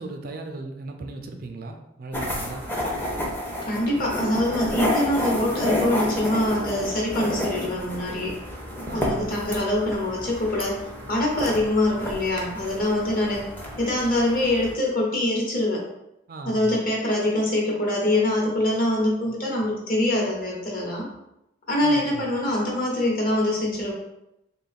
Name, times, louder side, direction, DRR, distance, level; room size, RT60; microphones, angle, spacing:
voice 1, 0.0-2.7 8.8-9.3 16.3-16.8 21.8-22.3, right 3 dB, 50° right, 4 dB, 0.4 m, -37 dB
sound 1, 2.1-14.7, left 1 dB, 10° left, 0.5 m, -30 dB
voice 2, 3.6-8.3 8.9-10.8 11.1-13.4 13.8-15.8 16.4-21.1 21.7-23.9, left 1 dB, 50° left, -2 dB, 1.0 m, -24 dB
3.3 x 2.3 x 4.1 m, 0.87 s
head